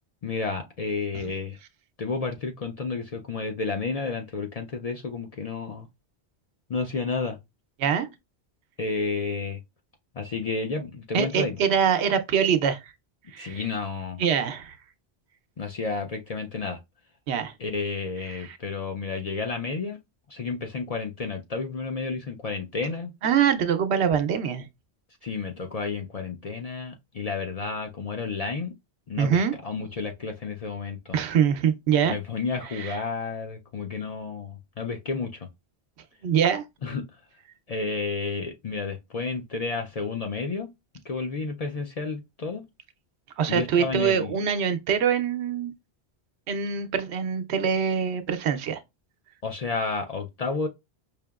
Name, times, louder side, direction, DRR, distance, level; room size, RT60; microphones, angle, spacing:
voice 1, 0.2-1.6 2.0-5.9 6.7-7.4 8.8-9.6 10.2-11.6 13.4-14.2 15.6-16.8 17.6-20.0 20.3-23.1 25.2-28.7 29.1-31.2 32.1-35.5 36.8-37.1 37.7-40.7 41.0-42.6 43.5-44.3 49.4-50.7, left 4 dB, 50° left, 0.5 m, -31 dB
voice 2, 11.1-12.8 13.3-13.6 14.2-14.8 17.3-17.5 18.3-18.6 23.2-24.7 29.2-29.5 31.1-32.2 32.7-33.0 36.2-36.6 43.4-45.7 46.5-48.8, right 7 dB, 90° right, 0.9 m, -24 dB
5.1 x 2.8 x 2.3 m
omnidirectional pair, 1.1 m